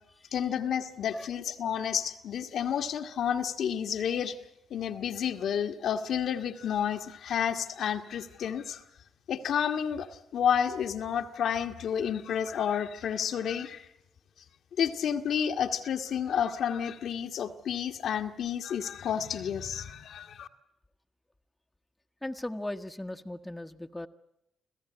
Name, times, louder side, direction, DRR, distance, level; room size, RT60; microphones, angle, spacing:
voice 1, 0.3-4.4 4.7-8.8 9.3-10.1 10.3-13.9 14.8-20.5, left 8 dB, 65° left, 5 dB, 1.4 m, -30 dB
voice 2, 22.2-24.1, left 1 dB, 10° left, 6 dB, 1.3 m, -37 dB
27.0 x 16.0 x 9.6 m, 0.83 s
hypercardioid pair, 45°, 0 cm